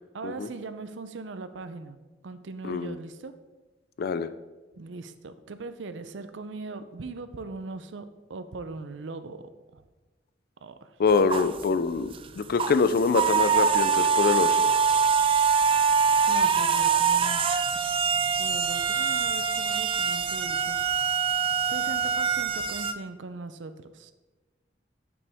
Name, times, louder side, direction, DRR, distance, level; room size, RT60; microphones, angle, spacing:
voice 1, 0.1-2.0 2.2-3.3 4.8-9.4 9.7-9.8 10.6-10.9 16.0-17.4 17.7-20.8 21.7-24.1, right 3 dB, 80° right, 11 dB, 0.5 m, -40 dB
voice 2, 2.6-3.0 4.0-4.3 11.0-14.6, left 4 dB, 55° left, 12 dB, 0.4 m, -25 dB
sound 1, 11.1-11.6 12.1-12.3 12.6-22.9, right 6 dB, 30° right, 0.3 m, -24 dB
9.7 x 5.3 x 3.5 m, 1.2 s
head